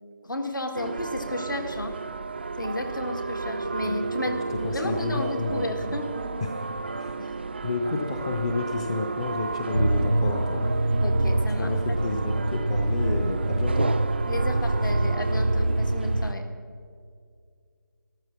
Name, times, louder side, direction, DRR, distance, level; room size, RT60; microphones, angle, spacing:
voice 1, 0.2-2.0 2.6-6.1 7.2-7.3 11.0-12.2 14.3-16.5, left 2 dB, 70° left, 5 dB, 1.9 m, -33 dB
sound 1, 0.7-16.3, right 4 dB, 30° right, 0.4 m, -33 dB
voice 2, 4.3-5.9 6.4-6.7 7.0-7.2 7.6-10.6 11.6-13.9, left 3 dB, 15° left, 3 dB, 0.6 m, -30 dB
sound 2, 9.7-16.3, right 2 dB, 90° right, 0.7 m, -25 dB
13.5 x 12.5 x 5.9 m, 2.2 s
figure-of-eight pair, 160°, 11 cm